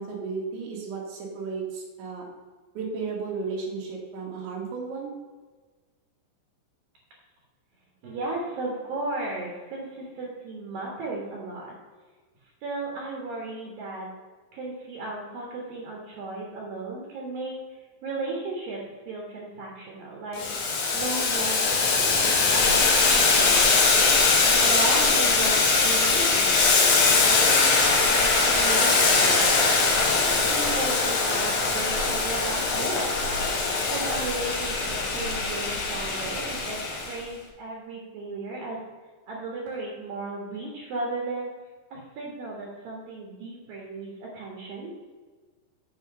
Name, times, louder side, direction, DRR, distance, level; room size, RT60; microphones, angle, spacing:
voice 1, 0.0-2.3 2.8-5.1, right 4 dB, 80° right, -1 dB, 4.0 m, -34 dB
voice 2, 8.0-11.7 12.6-14.1 14.5-17.5 18.0-22.7 23.0-23.8 24.5-29.5 30.5-33.1 33.9-38.8 39.3-41.5 41.9-44.9, right 2 dB, 60° right, -2 dB, 2.8 m, -35 dB
Boiling, 20.4-37.1, left 4 dB, 65° left, 1.9 m, -22 dB
8.2 x 6.5 x 5.5 m, 1.4 s
omnidirectional pair, 5.3 m